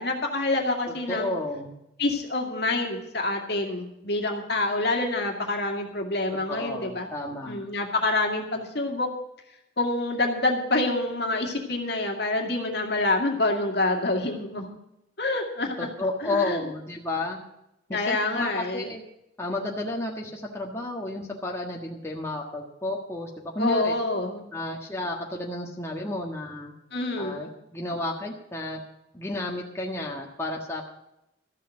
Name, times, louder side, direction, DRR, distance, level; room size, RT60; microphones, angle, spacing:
voice 1, 0.0-1.3 2.0-7.1 7.5-9.1 9.8-14.8 15.2-15.9 16.2-16.6 17.9-18.9 23.6-24.5 26.9-27.5, left 2 dB, 60° left, 3 dB, 2.1 m, -27 dB
voice 2, 1.1-1.8 6.5-7.7 15.8-17.4 17.9-19.0 19.4-23.9 24.5-26.7 27.2-28.8 29.1-30.9, left 2 dB, 15° left, -1 dB, 1.5 m, -32 dB
14.0 x 6.8 x 8.9 m, 0.85 s
head